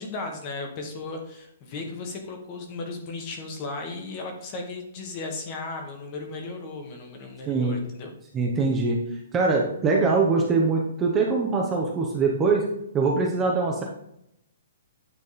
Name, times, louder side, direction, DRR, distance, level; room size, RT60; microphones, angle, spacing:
voice 1, 0.0-8.1, left 3 dB, 25° left, 3 dB, 1.1 m, -35 dB
voice 2, 7.5-7.8 8.3-9.0 9.3-12.7 12.9-13.8, right 4 dB, 10° right, -1 dB, 0.7 m, -23 dB
9.0 x 3.5 x 4.1 m, 0.76 s
hypercardioid pair, 175°, 0 cm